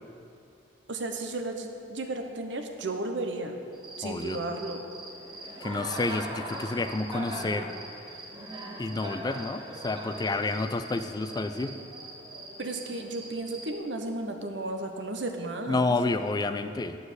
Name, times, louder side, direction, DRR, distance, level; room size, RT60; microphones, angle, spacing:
voice 1, 0.9-3.5 4.0-4.8 12.6-15.8, right 2 dB, 90° right, 5 dB, 0.9 m, -34 dB
Cricket, 3.7-13.8, right 1 dB, 25° right, 1.2 m, -41 dB
voice 2, 4.0-4.4 5.6-7.7 8.8-11.7 15.7-17.0, left 3 dB, 20° left, 9 dB, 0.4 m, -29 dB
10.5 x 4.9 x 8.0 m, 2.5 s
head